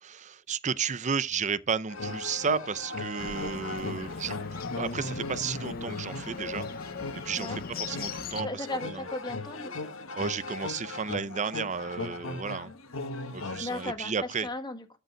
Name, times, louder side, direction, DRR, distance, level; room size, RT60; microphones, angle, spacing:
voice 1, 0.0-4.4 4.7-6.7 7.1-9.1 10.1-12.7 13.3-14.5, right 6 dB, 35° right, 0.6 m, -33 dB
sound 1, 1.9-13.9, left 3 dB, 80° left, 1.5 m, -38 dB
sound 2, 2.8-7.4, right 9 dB, 80° right, 1.9 m, -51 dB
Bird, 3.2-8.4, left 5 dB, 45° left, 0.6 m, -40 dB
voice 2, 8.4-9.9 13.6-15.0, left 2 dB, 20° left, 1.6 m, -36 dB
13.0 x 5.3 x 5.0 m
head